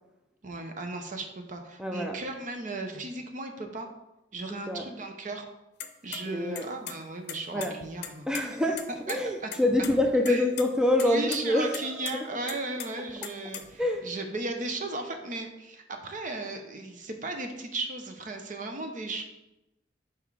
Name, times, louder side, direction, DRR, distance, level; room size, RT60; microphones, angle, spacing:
voice 1, 0.4-3.9 4.3-5.4 6.0-8.3 9.1-9.5 10.3-10.4 11.0-19.2, right 2 dB, 45° right, 5 dB, 0.8 m, -36 dB
voice 2, 1.8-2.2 4.5-4.9 6.3-6.7 7.5-7.7 8.3-12.1 13.8-14.1, left 1 dB, 5° right, 2 dB, 0.5 m, -26 dB
sound 1, 5.8-6.2 6.5-7.0 7.3-8.4 8.8-8.9 9.1-9.2 9.5-9.9 10.2-10.7 11.0-11.4 11.7-12.1 12.5-13.9, left 9 dB, 65° left, 0.6 m, -37 dB
5.9 x 4.6 x 4.7 m, 0.95 s
head